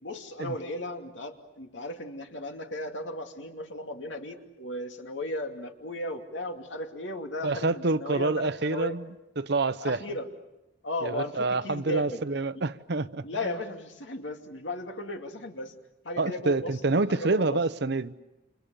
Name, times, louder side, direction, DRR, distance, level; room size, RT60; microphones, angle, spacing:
voice 1, 0.0-9.0 9.8-10.3 10.8-12.2 13.2-15.7 16.0-17.6, left 1 dB, 85° left, 2.6 m, -36 dB
voice 2, 7.4-9.1 9.4-10.0 11.0-13.2 16.2-18.1, right 3 dB, 65° right, 0.9 m, -27 dB
30.0 x 27.5 x 7.0 m
head